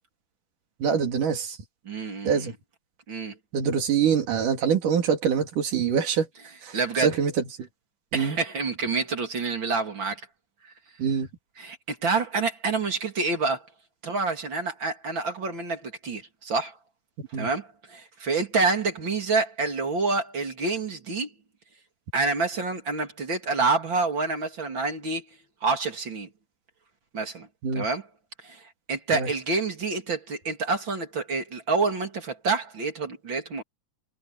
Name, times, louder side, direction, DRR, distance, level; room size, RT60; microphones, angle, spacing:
voice 1, 0.8-1.6 2.2-2.5 3.5-6.3 6.6-7.7 8.1-8.4 11.0-11.3 17.2-17.5 27.6-27.9 29.1-29.3, right 7 dB, 70° right, 4.2 m, -25 dB
voice 2, 1.8-2.5 3.1-3.4 6.7-7.1 8.1-10.2 11.6-13.7 14.0-16.8 17.4-21.3 22.1-25.2 25.6-26.3 27.1-27.5 27.7-28.0 28.4-28.6 28.9-33.6, right 4 dB, 35° right, 3.4 m, -27 dB
omnidirectional pair, 3.8 m